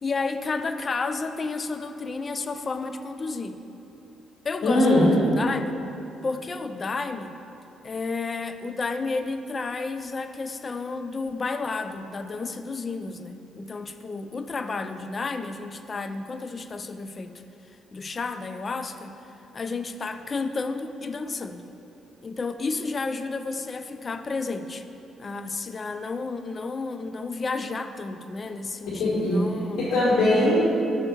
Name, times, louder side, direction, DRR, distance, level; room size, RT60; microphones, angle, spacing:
voice 1, 0.0-3.6 4.4-5.8 6.2-7.3 7.8-17.4 17.9-19.1 19.5-21.6 22.2-24.9 25.2-29.8, left 3 dB, 35° left, 9 dB, 0.4 m, -31 dB
voice 2, 4.6-5.1 29.0-29.4 29.8-30.6, left 1 dB, 85° left, -9 dB, 1.5 m, -20 dB
6.2 x 4.4 x 6.4 m, 2.9 s
cardioid pair, 90°, 0 cm